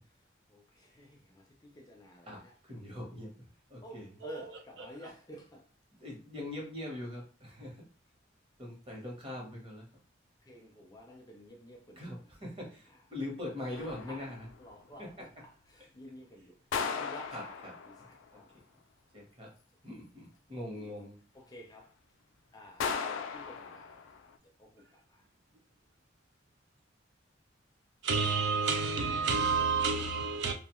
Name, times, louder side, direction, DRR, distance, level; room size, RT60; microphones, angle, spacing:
voice 1, 0.5-2.5 3.8-5.6 9.0-9.1 10.5-12.2 12.7-12.8 14.1-14.3 14.6-16.5 16.8-18.5 20.7-20.9 21.3-21.9 22.5-24.2 24.6-25.2, equal, 20° left, 0.5 m, -51 dB
voice 2, 2.3-4.1 6.0-7.9 8.6-9.9 12.0-14.5 15.0-15.3 17.3-17.7 18.0-18.1 19.1-19.5 19.8-21.2, left 1 dB, 30° right, 1.0 m, -42 dB
sound 1, 13.7-14.6 16.7-18.2 22.8-24.3, left 6 dB, 90° left, 0.3 m, -37 dB
voice 3, 28.0-30.5, right 5 dB, 65° right, 0.4 m, -29 dB
2.4 x 2.3 x 3.0 m
head